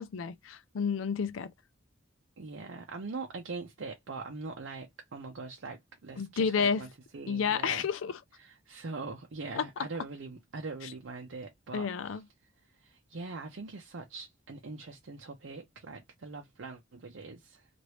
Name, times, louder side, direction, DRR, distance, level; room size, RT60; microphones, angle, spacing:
voice 1, 0.0-1.5 6.2-6.9 7.3-8.2 9.6-9.7 10.8-10.9 11.7-12.2, left 6 dB, 80° left, 0.4 m, -30 dB
voice 2, 2.4-7.9 8.4-12.2 12.8-17.7, right 3 dB, 75° right, 0.6 m, -42 dB
3.0 x 2.5 x 3.1 m
head